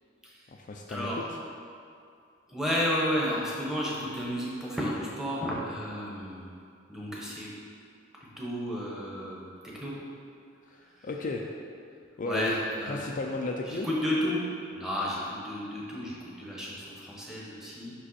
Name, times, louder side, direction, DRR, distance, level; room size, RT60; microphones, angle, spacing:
voice 1, 0.5-1.4 10.7-10.8 11.0-11.5 12.2-12.5 12.9-13.9, left 2 dB, 40° left, 0 dB, 0.4 m, -33 dB
voice 2, 2.5-6.5 6.9-7.5 8.4-9.4 9.8-9.9 12.2-13.0 13.7-14.4 14.7-17.9, equal, 5° right, -5 dB, 1.0 m, -32 dB
5.5 x 5.1 x 4.2 m, 2.4 s
head